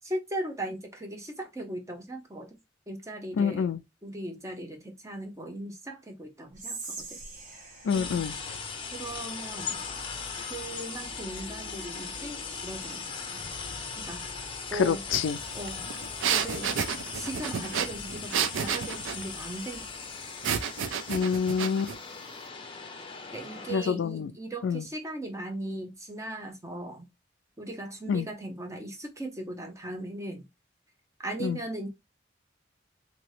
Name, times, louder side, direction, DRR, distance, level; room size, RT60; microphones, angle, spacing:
voice 1, 0.0-2.6 2.9-7.2 7.9-8.2 8.9-9.8 10.4-13.4 14.0-14.2 14.7-15.0 15.5-15.8 16.3-16.8 17.1-19.9 23.3-27.1 27.6-30.5 31.2-31.9, right 1 dB, 15° right, 0.6 m, -38 dB
voice 2, 3.3-3.8 7.8-8.6 14.7-15.4 21.1-21.9 23.7-24.3 24.6-24.9 28.1-28.3 31.4-31.6, left 6 dB, 75° left, 0.3 m, -27 dB
Whispering, 6.5-9.7, right 3 dB, 45° right, 1.2 m, -44 dB
sound 1, 7.9-23.8, left 5 dB, 25° left, 0.6 m, -39 dB
sound 2, 15.1-15.2 15.5-19.2 20.4-22.0, right 7 dB, 80° right, 0.4 m, -30 dB
3.0 x 2.7 x 3.0 m
head